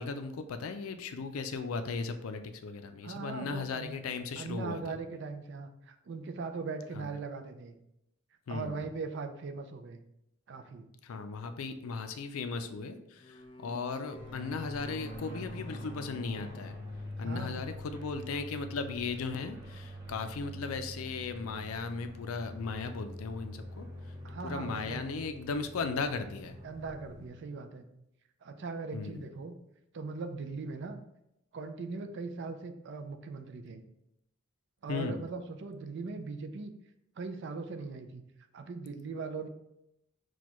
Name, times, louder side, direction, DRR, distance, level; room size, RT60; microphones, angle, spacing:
voice 1, 0.0-4.8 6.9-7.1 8.5-8.8 11.0-16.8 17.2-23.9 24.4-26.6 28.9-29.2 34.9-35.2, left 4 dB, 85° left, 9 dB, 0.4 m, -37 dB
voice 2, 3.0-4.0 4.4-7.8 8.5-10.0 10.5-10.9 17.2-17.6 24.2-25.0 26.6-27.8 28.4-29.5 29.9-31.0 31.5-33.8 34.8-36.7 37.2-38.2 38.5-39.5, right 4 dB, 60° right, 7 dB, 0.4 m, -40 dB
sound 1, 13.2-17.7, left 2 dB, 25° left, 0.4 m, -51 dB
sound 2, 14.1-27.3, left 1 dB, 20° right, 0.8 m, -45 dB
6.1 x 2.3 x 3.0 m, 0.83 s
head